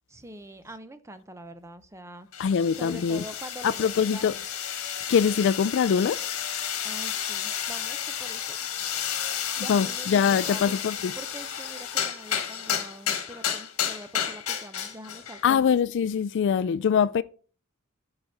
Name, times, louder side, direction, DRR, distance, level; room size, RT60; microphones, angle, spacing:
voice 1, 0.1-2.3 2.7-4.3 6.8-8.6 9.6-10.8 11.2-15.6, right 1 dB, 15° right, 0.6 m, -44 dB
sound 1, 2.3-15.5, left 9 dB, 75° left, 1.5 m, -32 dB
voice 2, 2.4-3.2 3.6-4.4 5.1-6.3 9.7-11.1 15.4-17.2, left 7 dB, 55° left, 0.3 m, -23 dB
9.2 x 4.9 x 5.3 m
head